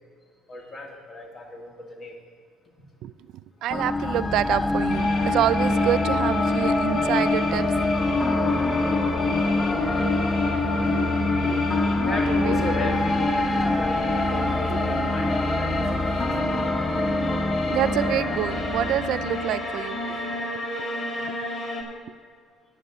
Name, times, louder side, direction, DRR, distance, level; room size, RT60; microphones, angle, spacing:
voice 1, 0.5-2.1 7.9-8.1 9.4-9.6 12.0-16.7, left 2 dB, 40° left, 0 dB, 2.3 m, -36 dB
voice 2, 3.6-7.7 9.5-9.6 10.9-11.1 11.4-11.6 12.1-12.2 12.4-12.7 15.9-16.3 17.7-20.0, right 12 dB, 70° right, 16 dB, 0.3 m, -27 dB
sound 1, 3.7-19.9, left 2 dB, 15° left, 0.5 m, -25 dB
sound 2, 4.9-21.8, left 3 dB, 60° left, 1.6 m, -30 dB
9.6 x 6.6 x 7.2 m, 2.1 s
supercardioid pair, 70°, 0 cm